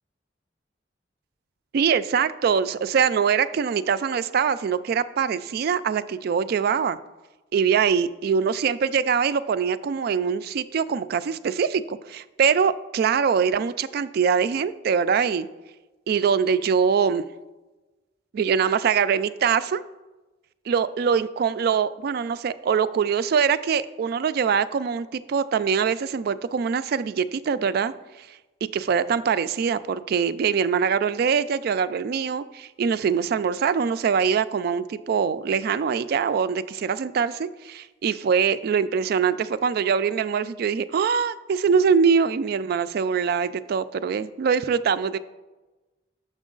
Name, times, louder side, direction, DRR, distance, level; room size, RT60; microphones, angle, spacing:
voice 1, 1.7-7.0 7.5-15.5 16.1-17.2 18.3-19.8 20.7-27.9 28.2-28.3 28.7-45.2, right 6 dB, 55° right, 14 dB, 0.3 m, -23 dB
6.7 x 6.2 x 3.8 m, 1.1 s
head